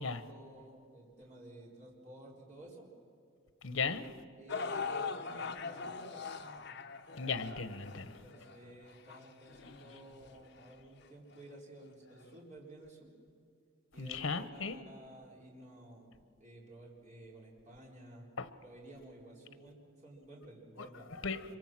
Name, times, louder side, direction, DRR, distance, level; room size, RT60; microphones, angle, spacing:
voice 1, 0.0-2.9 4.4-6.3 8.2-13.1 13.9-16.1 16.4-18.3 18.6-21.6, right 1 dB, 40° right, 4.1 m, -53 dB
voice 2, 3.6-4.1 7.2-8.1 14.0-14.8 18.4-18.5 20.8-21.6, left 4 dB, 80° left, 1.2 m, -37 dB
sound 1, 4.5-10.7 11.4-11.5 12.3-12.4, left 5 dB, 60° left, 1.0 m, -42 dB
26.5 x 23.5 x 6.1 m
head